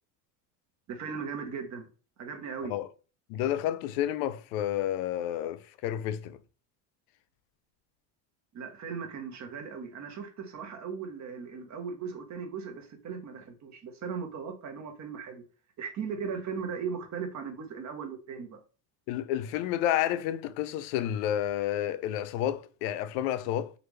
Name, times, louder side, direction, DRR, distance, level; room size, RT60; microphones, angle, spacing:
voice 1, 0.9-1.9 2.2-2.7 8.5-15.4 15.8-18.6, right 6 dB, 35° right, 0.9 m, -38 dB
voice 2, 3.3-6.4 19.1-23.7, left 11 dB, 70° left, 0.6 m, -30 dB
3.2 x 2.5 x 3.1 m
supercardioid pair, 105°, 48 cm